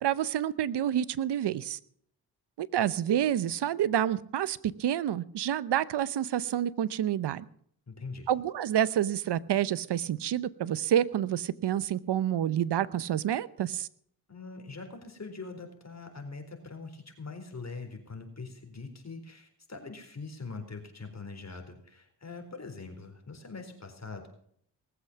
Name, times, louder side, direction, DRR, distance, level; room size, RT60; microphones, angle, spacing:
voice 1, 0.0-1.8 2.6-7.4 8.3-13.9, right 10 dB, 75° right, 18 dB, 0.8 m, -28 dB
voice 2, 7.9-8.3 14.3-24.3, left 4 dB, 40° left, 5 dB, 4.2 m, -43 dB
19.5 x 8.0 x 7.3 m, 0.65 s
cardioid pair, 60°, 41 cm